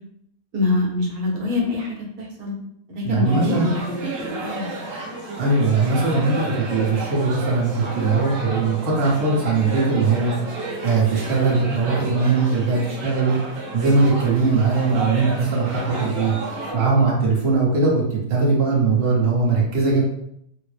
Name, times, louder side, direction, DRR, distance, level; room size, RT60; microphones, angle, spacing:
voice 1, 0.5-2.5 2.9-4.7, left 2 dB, 85° right, -2 dB, 1.3 m, -25 dB
voice 2, 3.0-3.7 5.4-10.5 10.8-13.3 13.7-16.3 16.7-20.0, right 4 dB, 45° right, -4 dB, 1.0 m, -20 dB
sound 1, 3.3-16.7, right 2 dB, 65° right, 1.2 m, -32 dB
3.5 x 2.1 x 3.2 m, 0.73 s
omnidirectional pair, 1.5 m